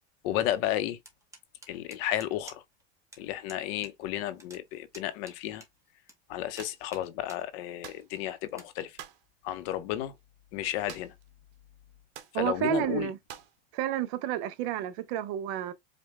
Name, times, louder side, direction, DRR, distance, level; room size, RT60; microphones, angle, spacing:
voice 1, 0.2-1.0 1.7-2.6 3.2-5.6 6.3-8.9 9.4-10.1 10.5-11.1 12.3-13.1, left 12 dB, 60° left, 0.7 m, -32 dB
sound 1, 1.1-2.8 3.1-3.2 3.5-3.9 4.2-6.1 6.5-7.4 7.9-8.0 8.5-8.7, right 2 dB, 10° right, 0.7 m, -51 dB
Golpe hueso, 6.6-6.8 7.8-8.1 9.0-9.3 10.9-11.3 11.5-11.6 12.1-12.4 13.3-13.6, right 10 dB, 80° right, 0.8 m, -46 dB
voice 2, 12.3-13.2 13.7-15.7, right 11 dB, 50° right, 0.5 m, -30 dB
5.1 x 2.1 x 3.1 m
supercardioid pair, 165°, 34 cm